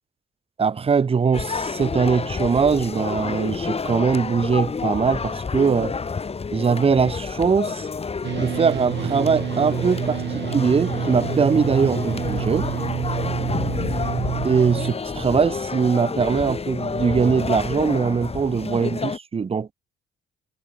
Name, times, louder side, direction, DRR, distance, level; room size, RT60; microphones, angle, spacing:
voice 1, 0.6-6.0 6.5-7.9 8.4-12.7 14.4-19.7, right 5 dB, 30° right, 0.8 m, -21 dB
sound 1, 1.3-19.2, left 5 dB, 30° left, 1.8 m, -29 dB
sound 2, 8.2-14.9, right 10 dB, 65° right, 1.4 m, -28 dB
cardioid pair, 90°, 20 cm